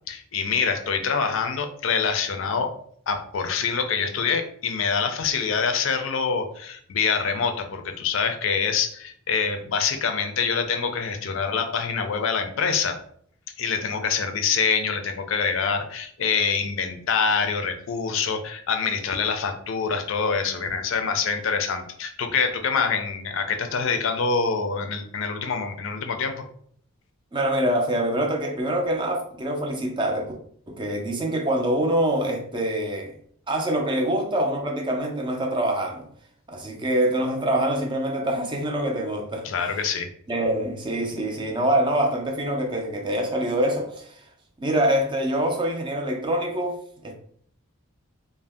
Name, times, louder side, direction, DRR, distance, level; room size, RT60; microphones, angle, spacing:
voice 1, 0.1-2.7 3.1-13.0 13.6-26.4 39.4-40.1, left 5 dB, 65° left, 0.4 m, -25 dB
voice 2, 27.3-30.3 30.7-33.1 33.5-36.1 36.5-39.8 40.3-44.2 44.6-47.1, right 1 dB, 20° right, 0.4 m, -25 dB
2.5 x 2.0 x 3.4 m
head